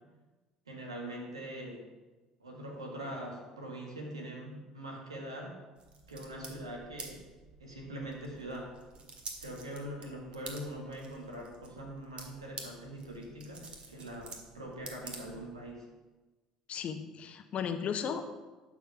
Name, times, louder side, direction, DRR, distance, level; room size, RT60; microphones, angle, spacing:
voice 1, 0.7-1.9 2.4-5.6 6.1-7.3 7.6-8.7 9.4-15.9, right 1 dB, 90° right, 0 dB, 1.7 m, -42 dB
sound 1, 5.8-15.7, right 3 dB, 40° right, 1.9 m, -49 dB
voice 2, 16.7-18.3, left 7 dB, 45° left, 8 dB, 1.0 m, -35 dB
11.5 x 4.9 x 5.8 m, 1.2 s
hypercardioid pair, 60°, 3 cm